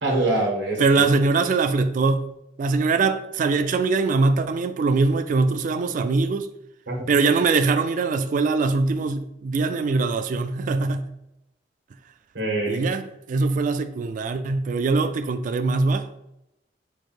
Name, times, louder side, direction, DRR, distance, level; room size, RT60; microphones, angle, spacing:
voice 1, 0.0-1.1 6.9-7.0 12.3-12.8, right 2 dB, 90° right, 1.4 m, -24 dB
voice 2, 0.8-2.2 2.6-6.5 7.1-11.1 12.7-16.1, right 4 dB, 45° right, 0.3 m, -22 dB
4.6 x 2.5 x 4.4 m
head